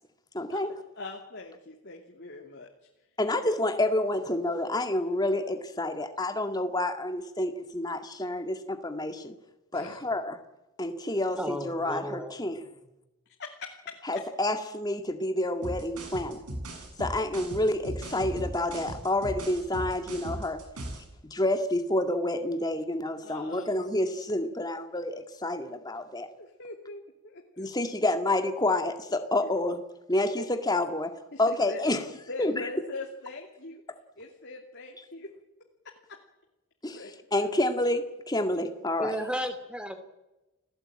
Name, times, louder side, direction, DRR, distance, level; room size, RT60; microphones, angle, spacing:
voice 1, 0.3-0.7 3.2-9.3 9.7-10.4 10.8-12.6 14.1-16.4 17.0-20.6 21.3-26.3 27.6-29.8 30.1-31.1 31.4-32.0 32.4-32.5 36.8-37.0 37.3-39.2, left 1 dB, 20° left, 7 dB, 2.1 m, -28 dB
voice 2, 1.0-2.7 3.4-3.6 9.7-10.0 13.4-14.0 23.2-23.7 26.4-27.7 29.4-29.5 30.4-30.6 31.3-31.8 32.1-33.8 34.2-35.3 35.8-36.2 36.9-37.1 37.4-37.5, left 3 dB, 50° left, 1 dB, 2.7 m, -42 dB
voice 3, 11.4-12.4 39.0-39.9, equal, 5° right, 9 dB, 2.8 m, -33 dB
sound 1, 15.6-21.1, right 1 dB, 90° right, 7.4 m, -37 dB
30.0 x 17.5 x 8.9 m, 1.0 s
head